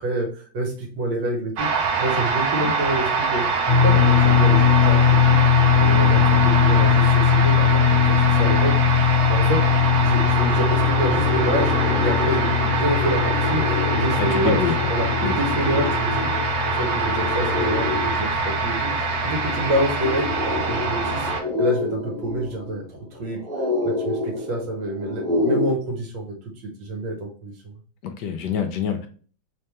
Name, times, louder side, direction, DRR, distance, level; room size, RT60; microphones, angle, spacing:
voice 1, 0.0-9.6 10.0-13.6 13.9-14.6 14.9-16.3 16.7-21.3 21.6-22.9 23.1-23.4 23.8-26.3 26.6-27.7, right 1 dB, 70° right, 1 dB, 1.6 m, -27 dB
sound 1, 1.6-21.4, right 5 dB, 90° right, 1.5 m, -24 dB
sound 2, 3.7-21.3, left 8 dB, 55° left, 1.1 m, -21 dB
sound 3, 9.6-25.7, left 3 dB, 5° left, 0.9 m, -29 dB
voice 2, 14.2-14.8 15.2-15.4 28.0-29.1, left 8 dB, 70° left, 7 dB, 1.1 m, -26 dB
3.5 x 3.4 x 2.9 m, 0.41 s
omnidirectional pair, 2.1 m